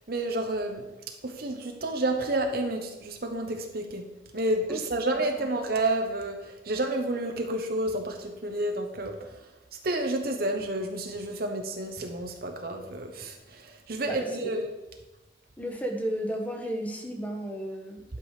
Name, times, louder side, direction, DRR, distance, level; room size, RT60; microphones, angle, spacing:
voice 1, 0.1-9.4 9.8-14.6, right 1 dB, 55° right, 4 dB, 1.0 m, -30 dB
voice 2, 14.0-14.5 15.6-18.0, equal, 10° left, 2 dB, 1.3 m, -33 dB
11.0 x 6.2 x 4.9 m, 1.0 s
head